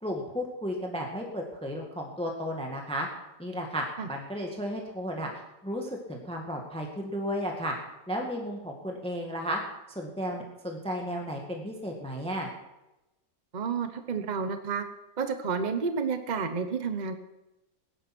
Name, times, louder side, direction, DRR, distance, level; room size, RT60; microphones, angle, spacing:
voice 1, 0.0-3.1 3.4-5.3 5.6-7.7 8.1-9.6 9.9-12.5, equal, 5° left, 1 dB, 1.7 m, -33 dB
voice 2, 13.5-14.8 15.2-17.2, right 5 dB, 45° right, 8 dB, 0.6 m, -30 dB
17.5 x 10.5 x 6.0 m, 0.98 s
omnidirectional pair, 2.0 m